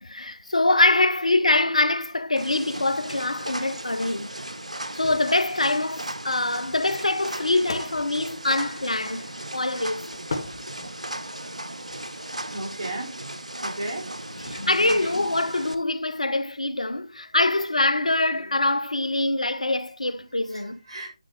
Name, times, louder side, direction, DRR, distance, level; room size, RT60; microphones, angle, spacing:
voice 1, 0.0-4.3 5.0-10.1 14.3-20.8, left 2 dB, 75° left, 0.7 m, -24 dB
sound 1, 2.4-15.7, right 1 dB, 85° right, 0.9 m, -36 dB
sound 2, 4.8-5.4 6.7-9.2 10.1-11.3 11.8-12.0, left 3 dB, 45° left, 1.3 m, -38 dB
voice 2, 12.5-13.1 13.6-14.1 15.0-15.1 20.5-21.1, right 1 dB, 50° right, 3.5 m, -34 dB
9.6 x 4.9 x 3.2 m
figure-of-eight pair, 150°, 4 cm